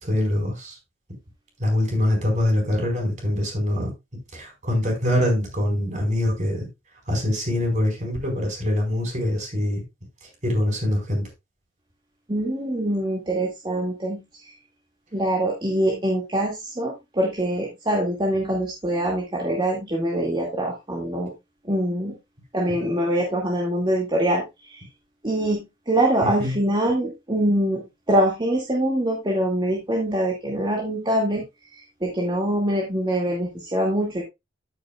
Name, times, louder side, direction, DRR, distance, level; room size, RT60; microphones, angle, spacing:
voice 1, 0.0-0.8 1.6-3.9 4.3-6.7 7.1-9.8 10.4-11.3 26.2-26.5, left 1 dB, 40° right, 4.7 m, -24 dB
voice 2, 12.3-14.5 15.1-21.3 21.6-22.1 22.5-24.8 25.2-31.4 31.7-34.2, right 1 dB, 25° right, 2.1 m, -24 dB
13.5 x 6.6 x 2.4 m
head